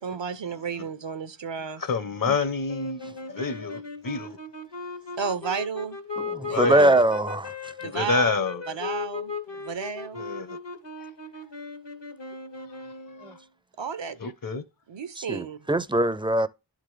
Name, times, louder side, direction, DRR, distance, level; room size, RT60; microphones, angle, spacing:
voice 1, 0.0-1.8 5.1-6.0 6.3-6.8 7.8-8.4 8.7-10.3 13.8-14.2 14.9-15.6, right 6 dB, 80° right, 0.8 m, -33 dB
voice 2, 1.8-4.4 6.5-7.0 7.8-8.6 10.2-10.6 13.2-13.3 14.2-14.6, left 4 dB, 50° left, 0.8 m, -28 dB
sound 1, 2.7-13.4, left 4 dB, 75° left, 1.4 m, -37 dB
voice 3, 6.2-7.7 13.2-13.3 15.2-16.5, right 1 dB, 10° right, 0.4 m, -23 dB
11.0 x 3.7 x 3.3 m
wide cardioid pair, 40°, 43 cm